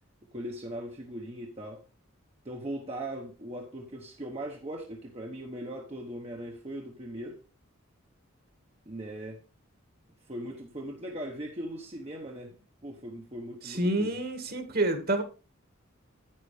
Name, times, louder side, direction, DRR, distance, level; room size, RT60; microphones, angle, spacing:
voice 1, 0.3-1.8 2.4-7.4 8.9-9.4 10.3-12.6 12.8-14.1, right 1 dB, 30° right, 1.1 m, -39 dB
voice 2, 13.6-15.2, right 1 dB, 45° right, 1.9 m, -28 dB
10.0 x 8.9 x 3.3 m
head